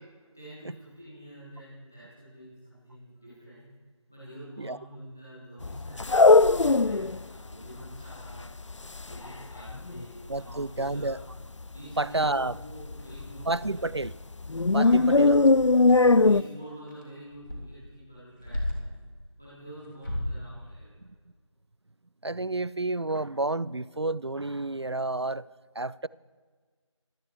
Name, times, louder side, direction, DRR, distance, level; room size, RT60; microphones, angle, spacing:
voice 1, 0.3-3.7 4.1-8.5 9.0-11.2 11.7-13.9 14.8-15.7 16.2-19.0 19.4-20.9, equal, 5° left, 1.2 m, -47 dB
sound 1, 5.6-7.2 7.5-7.6 7.8-10.0 10.4-10.6 10.9-11.4 11.7-11.8 12.3-12.4 12.8-14.1 14.4-16.4, left 3 dB, 70° left, 0.4 m, -20 dB
sound 2, 10.3-10.6 10.9-11.0 11.4-11.9 12.2-12.3 12.8-19.0 19.8-20.5, left 1 dB, 40° left, 3.2 m, -38 dB
voice 2, 10.3-11.2 12.0-12.6 13.5-14.1 14.7-15.4 22.2-25.5 25.8-26.1, right 2 dB, 55° right, 0.4 m, -30 dB
22.5 x 14.5 x 3.3 m
figure-of-eight pair, 175°, 17 cm